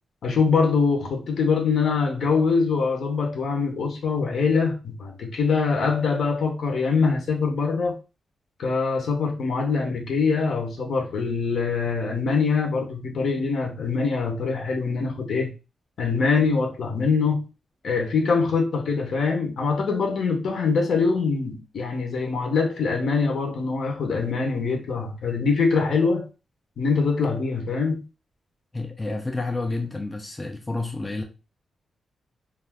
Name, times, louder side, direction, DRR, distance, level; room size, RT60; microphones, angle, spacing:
voice 1, 0.2-8.0 8.6-15.5 16.0-17.5 17.8-26.3 26.8-28.0, left 4 dB, 65° left, 0.7 m, -23 dB
voice 2, 28.7-31.2, left 2 dB, 15° left, 0.4 m, -29 dB
2.4 x 2.3 x 3.4 m
wide cardioid pair, 145°, 0 cm